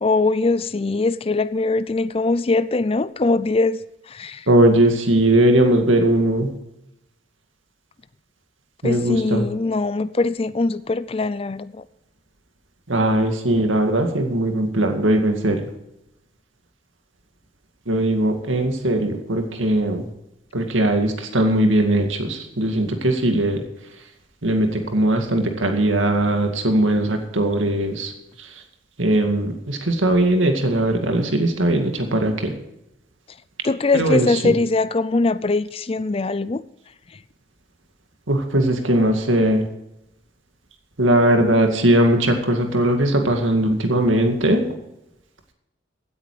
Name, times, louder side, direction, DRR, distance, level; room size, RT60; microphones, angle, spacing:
voice 1, 0.0-3.8 4.1-4.5 8.8-11.8 33.6-36.6, left 3 dB, 30° left, 0.4 m, -21 dB
voice 2, 4.5-6.5 8.8-9.5 12.9-15.6 17.9-20.1 20.5-23.6 24.4-28.1 28.4-28.5 29.0-32.5 33.9-34.5 38.3-39.7 41.0-44.7, right 1 dB, 85° right, 2.2 m, -19 dB
16.5 x 9.6 x 4.9 m
head